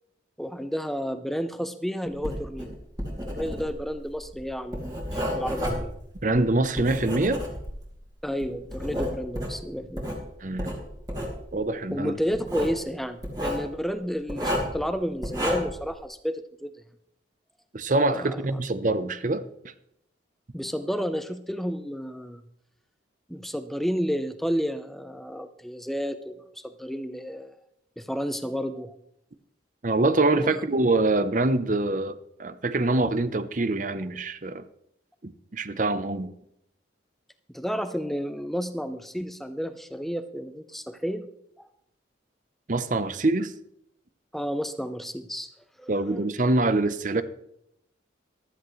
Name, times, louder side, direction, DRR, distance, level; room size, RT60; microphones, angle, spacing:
voice 1, 0.4-2.8 3.3-6.0 8.2-10.2 11.9-16.7 18.1-18.6 20.5-22.4 23.3-27.5 28.0-29.0 30.3-30.6 37.5-41.3 41.6-41.7 44.3-45.5 45.8-46.2, equal, ahead, 9 dB, 0.6 m, -31 dB
Writing, 2.1-7.9 8.4-10.2 10.6-11.4 12.3-12.8 13.2-13.6 14.3-14.8 15.2-15.8, equal, 20° right, 2.7 m, -31 dB
voice 2, 6.2-7.4 10.4-10.7 11.5-12.2 17.7-19.4 29.8-34.6 35.2-36.3 42.7-43.5 45.9-47.2, right 2 dB, 40° right, 12 dB, 0.7 m, -25 dB
14.5 x 13.0 x 3.2 m, 0.75 s
head